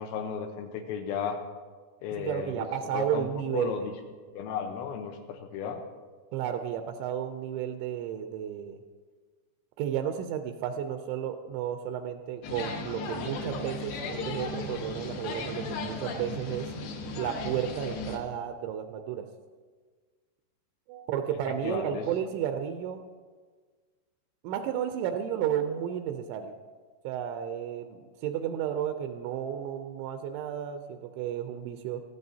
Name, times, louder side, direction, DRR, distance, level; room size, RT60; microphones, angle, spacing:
voice 1, 0.0-1.4 2.0-2.7 2.9-3.9 4.3-5.8 21.6-22.1, left 6 dB, 85° left, 4 dB, 3.3 m, -34 dB
voice 2, 2.2-3.7 6.3-8.8 9.8-16.7 17.2-19.3 20.9-23.0 24.4-26.6 27.0-32.0, right 9 dB, 85° right, 7 dB, 3.0 m, -32 dB
sound 1, 12.4-18.2, left 3 dB, 70° left, 3.0 m, -36 dB
19.5 x 14.0 x 2.8 m, 1.5 s
omnidirectional pair, 5.3 m